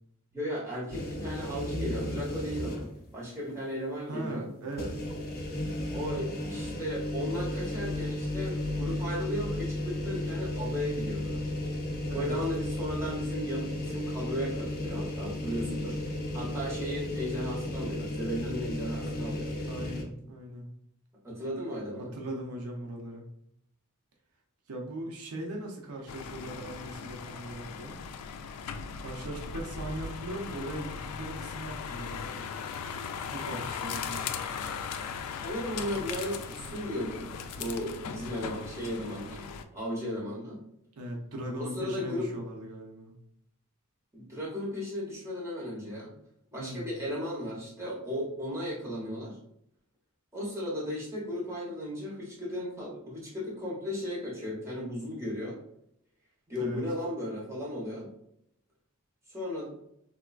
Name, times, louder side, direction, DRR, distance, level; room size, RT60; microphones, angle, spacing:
voice 1, 0.3-4.5 5.9-11.4 12.1-16.0 16.3-19.6 21.2-22.1 35.3-40.6 41.6-42.3 44.1-46.1 46.5-49.4 50.3-55.5 56.5-58.1 59.3-59.7, left 1 dB, 15° right, -6 dB, 1.0 m, -35 dB
sound 1, 0.9-3.1 3.5-3.6 4.7-20.0, left 1 dB, 45° left, 0.6 m, -34 dB
voice 2, 4.1-5.0 12.1-12.3 19.7-20.7 22.0-23.3 24.7-28.0 29.0-32.5 33.1-34.2 41.0-43.1 46.6-46.9 56.6-56.8, right 1 dB, 80° right, 1 dB, 0.6 m, -39 dB
sound 2, 26.1-39.6, left 6 dB, 90° left, 0.3 m, -38 dB
3.5 x 2.3 x 2.3 m, 0.73 s
head